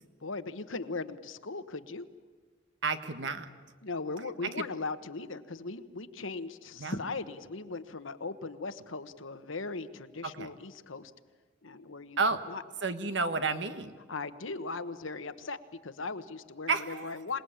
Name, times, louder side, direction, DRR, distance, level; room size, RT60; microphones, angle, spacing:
voice 1, 0.2-2.1 3.8-11.1 11.6-12.2 12.5-12.6 14.1-15.6 15.8-17.4, left 3 dB, 85° left, 11 dB, 1.2 m, -38 dB
voice 2, 2.8-3.5 4.6-4.7 6.8-7.0 10.2-10.5 12.2-12.4 12.8-13.9 16.7-17.2, right 4 dB, 70° right, 9 dB, 1.6 m, -31 dB
27.0 x 19.5 x 9.0 m, 1.5 s
head